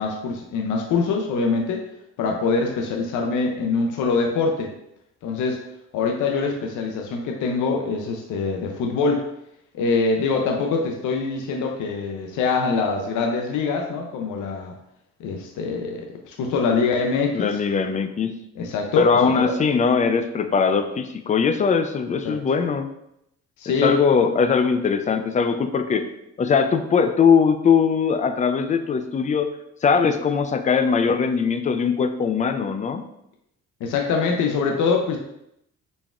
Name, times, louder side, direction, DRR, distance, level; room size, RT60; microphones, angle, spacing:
voice 1, 0.0-1.8 2.2-4.7 5.2-5.6 5.9-9.3 9.7-14.7 15.2-17.6 18.6-19.6 22.2-22.4 23.6-24.0 33.8-35.2, left 4 dB, 80° left, 2 dB, 0.6 m, -24 dB
voice 2, 17.3-18.3 19.0-22.9 23.8-26.1 26.4-29.5 29.8-33.0, left 6 dB, 25° left, 9 dB, 0.3 m, -20 dB
4.1 x 3.4 x 2.4 m, 0.80 s
cardioid pair, 90°, 30 cm